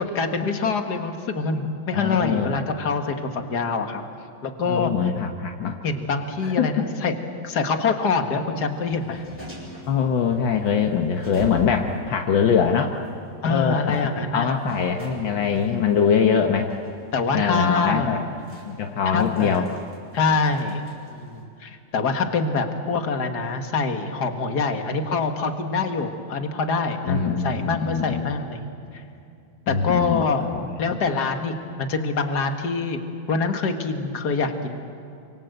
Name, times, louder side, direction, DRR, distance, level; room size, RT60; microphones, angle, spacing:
voice 1, 0.0-4.0 4.4-5.1 5.8-7.2 7.4-9.3 13.4-14.5 15.2-15.5 17.1-18.2 19.1-19.7 20.1-20.8 21.1-28.7 29.7-30.5 30.8-33.0 33.3-34.8, left 4 dB, 55° left, 6 dB, 2.3 m, -25 dB
voice 2, 1.9-2.5 4.7-5.8 6.4-6.9 9.9-13.0 13.5-16.7 17.3-18.3 18.7-19.7 27.0-28.4 29.7-30.2 30.5-31.0, left 6 dB, 75° left, 3 dB, 2.0 m, -23 dB
sound 1, 8.7-21.4, right 1 dB, 5° right, 6.7 m, -44 dB
28.0 x 25.5 x 8.0 m, 2.6 s
omnidirectional pair, 2.1 m